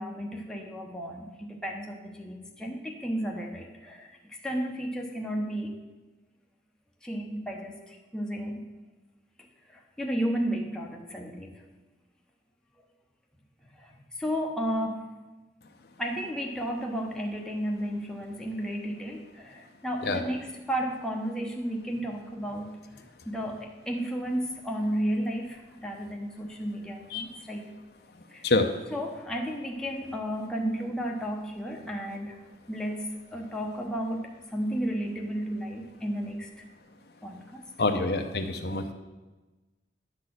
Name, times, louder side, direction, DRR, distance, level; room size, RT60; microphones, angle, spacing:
voice 1, 0.0-5.7 7.0-8.7 9.7-11.6 13.7-15.0 16.0-27.7 28.3-28.5 28.9-32.4 32.7-36.5 37.2-37.6, equal, 5° left, 0 dB, 0.9 m, -33 dB
voice 2, 28.4-28.8 37.8-38.9, left 2 dB, 60° left, 6 dB, 0.7 m, -26 dB
10.5 x 4.1 x 7.7 m, 1.2 s
head